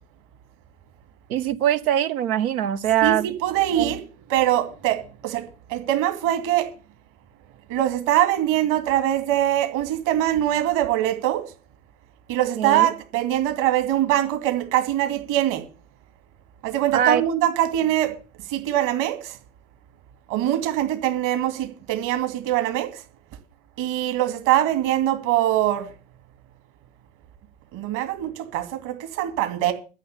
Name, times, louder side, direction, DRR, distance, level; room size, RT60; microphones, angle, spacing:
voice 1, 1.3-3.3 3.7-3.9 12.6-12.9 16.9-17.2, right 10 dB, 65° right, 1.2 m, -22 dB
voice 2, 3.0-4.0 4.3-5.4 5.7-6.7 7.7-11.4 12.3-15.6 16.6-18.1 18.5-19.4 20.3-22.9 23.8-25.9 27.7-29.7, right 12 dB, 40° right, 2.5 m, -23 dB
13.5 x 6.2 x 8.3 m
figure-of-eight pair, 90°, 46 cm